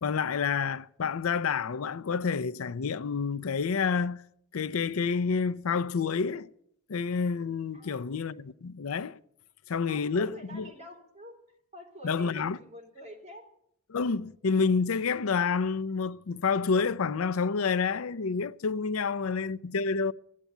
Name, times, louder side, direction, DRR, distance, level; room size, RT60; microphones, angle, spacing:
voice 1, 0.0-4.2 4.5-6.5 6.9-9.2 9.7-10.7 12.0-12.6 13.9-20.1, left 5 dB, 85° left, 0.5 m, -29 dB
voice 2, 7.7-8.0 9.9-13.4 19.0-19.4, equal, 30° right, 3.5 m, -47 dB
15.0 x 8.3 x 9.1 m
head